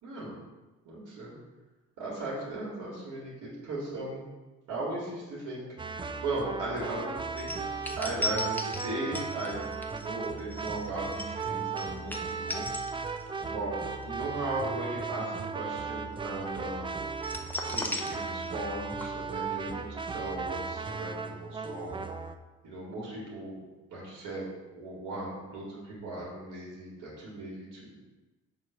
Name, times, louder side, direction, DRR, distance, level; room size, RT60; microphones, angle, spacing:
voice 1, 0.0-0.3 0.9-1.4 2.0-4.2 4.7-5.6 5.9-7.5 7.8-9.6 9.9-12.7 13.4-13.7 14.0-17.0 17.7-22.0 22.6-23.6 23.9-24.5 24.7-27.9, right 2 dB, 85° right, -6 dB, 2.3 m, -37 dB
sound 1, 5.8-22.4, right 5 dB, 15° right, 0.3 m, -36 dB
sound 2, 7.4-13.4 13.8-14.0 17.2-18.7 19.0-19.1, left 1 dB, 5° left, 0.8 m, -36 dB
6.9 x 3.2 x 5.9 m, 1.2 s
cardioid pair, 90°, 30 cm